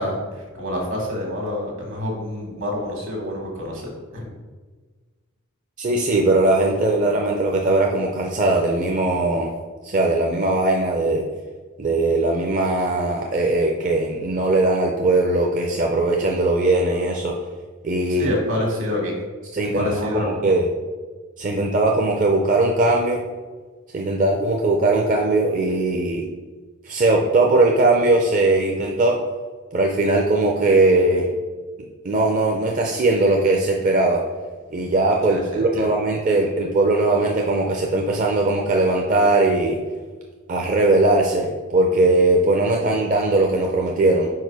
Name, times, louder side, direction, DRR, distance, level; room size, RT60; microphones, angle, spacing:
voice 1, 0.0-4.3 18.1-19.2 19.7-20.5 35.3-35.9, left 1 dB, 65° right, 0 dB, 1.8 m, -27 dB
voice 2, 5.8-9.5 9.8-11.2 11.8-17.3 17.8-18.4 19.5-20.6 21.4-23.2 23.9-26.3 26.8-29.2 29.7-31.3 32.0-34.2 34.7-39.8 40.5-44.3, right 2 dB, 40° right, 0 dB, 0.5 m, -19 dB
4.7 x 4.7 x 4.7 m, 1.4 s
head